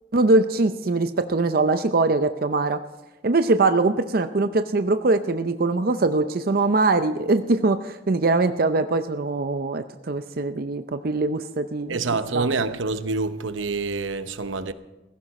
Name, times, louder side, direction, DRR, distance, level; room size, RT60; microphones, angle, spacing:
voice 1, 0.1-2.8 3.2-12.0 12.3-12.5, right 3 dB, 50° right, 0.6 m, -22 dB
voice 2, 11.9-14.7, right 3 dB, 85° right, 0.9 m, -26 dB
16.5 x 15.0 x 4.2 m
head